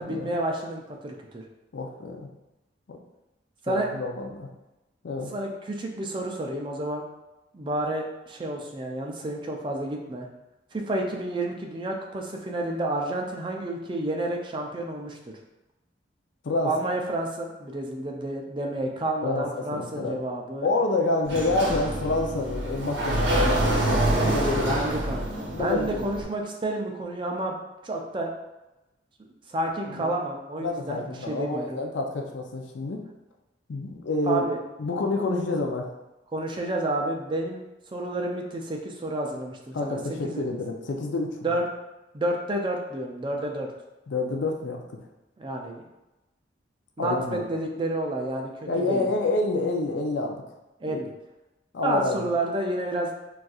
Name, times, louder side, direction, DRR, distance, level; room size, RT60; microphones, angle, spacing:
voice 1, 0.0-1.4 3.6-3.9 5.3-7.0 7.5-10.3 10.7-15.2 16.6-20.7 24.5-27.6 27.8-28.3 29.5-31.8 34.3-34.6 36.3-37.6 37.9-40.0 40.2-40.4 41.4-41.6 42.1-43.7 45.4-45.8 47.0-49.1 50.8-51.1 51.8-53.1, right 1 dB, 25° right, 1 dB, 0.4 m, -30 dB
voice 2, 1.7-2.3 2.9-3.0 3.7-4.5 5.0-5.3 16.4-16.7 19.2-19.5 19.7-20.2 20.6-24.7 25.5-26.1 29.9-30.1 30.6-33.0 33.7-34.5 34.8-35.9 39.7-41.5 44.1-44.8 47.0-47.4 48.7-50.4 50.8-51.0 51.7-52.3, left 2 dB, 80° left, 2 dB, 0.5 m, -28 dB
Sliding door, 21.2-26.2, right 1 dB, 70° right, 0.8 m, -26 dB
4.0 x 2.4 x 2.4 m, 1.0 s
head